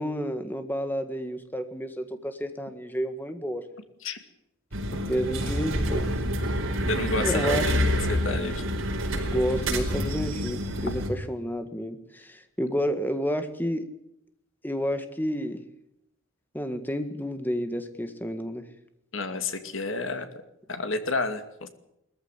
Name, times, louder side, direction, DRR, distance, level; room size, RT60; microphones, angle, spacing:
voice 1, 0.0-3.6 4.9-6.1 7.2-7.7 9.3-13.9 14.6-15.6 16.5-18.7, equal, 10° left, 8 dB, 1.7 m, -30 dB
sound 1, 4.7-11.1, equal, 80° right, 5.0 m, -28 dB
sound 2, 5.2-11.0, equal, 50° right, 4.8 m, -36 dB
voice 2, 6.9-7.7 8.1-8.6 19.1-20.3 20.7-21.7, left 3 dB, 75° left, 8 dB, 2.4 m, -30 dB
20.5 x 14.5 x 9.8 m, 0.81 s
head